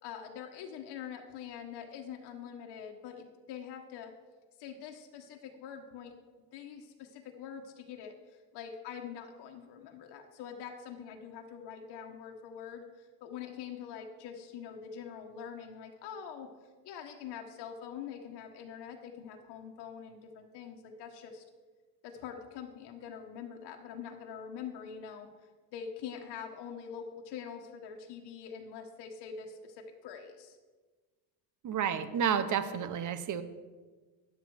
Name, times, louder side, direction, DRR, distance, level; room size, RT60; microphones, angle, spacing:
voice 1, 0.0-4.1 4.6-6.1 6.5-16.5 16.8-21.4 22.0-25.3 25.7-30.6, left 7 dB, 65° left, 2 dB, 1.4 m, -44 dB
voice 2, 31.6-33.4, right 8 dB, 45° right, 12 dB, 1.1 m, -30 dB
11.0 x 8.1 x 6.3 m, 1.3 s
supercardioid pair, 105°, 43 cm